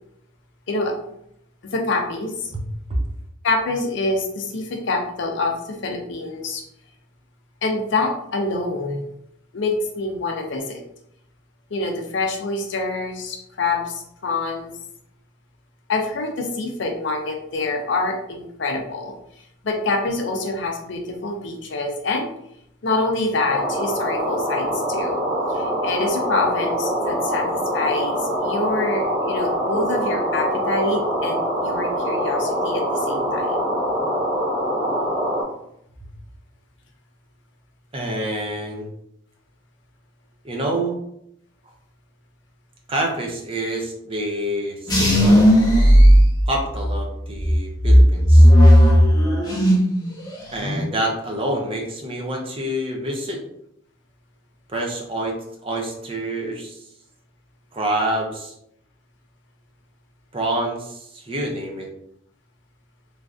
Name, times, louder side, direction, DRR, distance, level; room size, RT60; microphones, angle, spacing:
voice 1, 1.7-2.5 3.4-6.6 7.6-9.1 9.5-10.8 11.7-14.7 15.9-19.1 19.6-22.3 22.8-25.2 25.5-33.6, left 3 dB, 65° left, 2 dB, 0.5 m, -26 dB
sound 1, 23.5-35.4, equal, 45° right, 1.3 m, -24 dB
voice 2, 37.9-38.9 40.4-41.0 42.9-45.4 46.5-48.5 50.5-53.4 54.7-55.4 55.6-56.8 57.7-58.5 60.3-61.9, right 1 dB, 25° right, 0 dB, 0.5 m, -27 dB
sound 2, 44.9-46.9 47.4-50.0 50.3-50.8, equal, 20° left, 0.7 m, -13 dB
3.2 x 2.5 x 2.4 m, 0.76 s
head